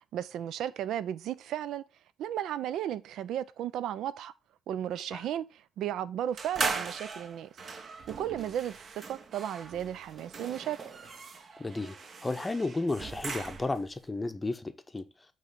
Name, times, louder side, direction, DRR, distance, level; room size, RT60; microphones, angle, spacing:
voice 1, 0.1-1.8 2.2-4.3 4.7-7.5 8.2-10.8, right 10 dB, 80° right, 0.4 m, -34 dB
sound 1, 6.4-13.9, right 4 dB, 50° right, 0.8 m, -39 dB
voice 2, 11.6-12.0 12.2-15.1, left 2 dB, 20° left, 0.7 m, -33 dB
8.2 x 3.1 x 5.2 m
cardioid pair, 90°, 0 cm